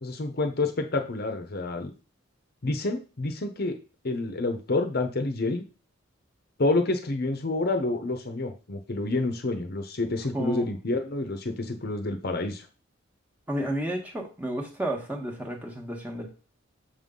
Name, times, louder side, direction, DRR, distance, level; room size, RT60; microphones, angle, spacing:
voice 1, 0.0-1.9 2.6-3.8 4.0-5.6 6.6-12.7, left 2 dB, 50° left, 6 dB, 0.8 m, -28 dB
voice 2, 10.3-10.7 13.5-16.3, right 1 dB, 10° right, 0 dB, 1.3 m, -32 dB
6.8 x 5.5 x 3.8 m, 0.34 s
head